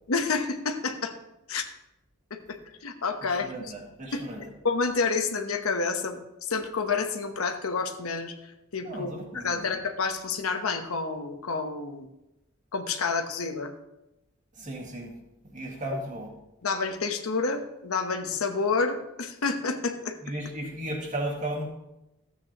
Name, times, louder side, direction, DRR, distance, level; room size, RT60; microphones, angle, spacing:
voice 1, 0.1-1.1 1.5-1.6 2.3-3.7 4.1-4.2 4.6-6.2 6.5-8.3 8.7-12.1 12.7-13.7 16.6-20.2, left 4 dB, 85° left, 6 dB, 1.0 m, -29 dB
voice 2, 3.3-4.4 8.8-9.7 14.6-15.1 15.4-16.3 20.2-21.7, right 1 dB, 35° right, -1 dB, 2.0 m, -35 dB
13.5 x 8.4 x 3.0 m, 0.93 s
head